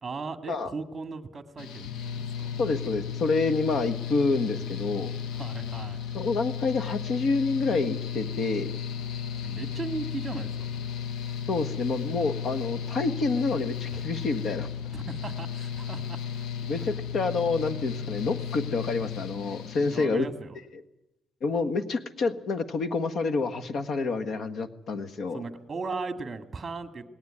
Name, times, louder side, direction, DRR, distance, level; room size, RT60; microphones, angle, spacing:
voice 1, 0.0-2.5 5.3-6.0 9.4-10.9 13.9-14.0 14.9-16.5 18.2-18.3 19.9-20.6 25.3-27.1, right 4 dB, 30° right, 8 dB, 2.1 m, -37 dB
Mechanical fan, 1.6-20.1, left 7 dB, 90° left, 1.2 m, -34 dB
voice 2, 2.6-5.1 6.1-8.7 11.5-14.7 16.7-20.3 21.4-25.4, left 4 dB, 65° left, 10 dB, 1.6 m, -28 dB
18.5 x 18.0 x 9.9 m, 0.90 s
cardioid pair, 100°, 0 cm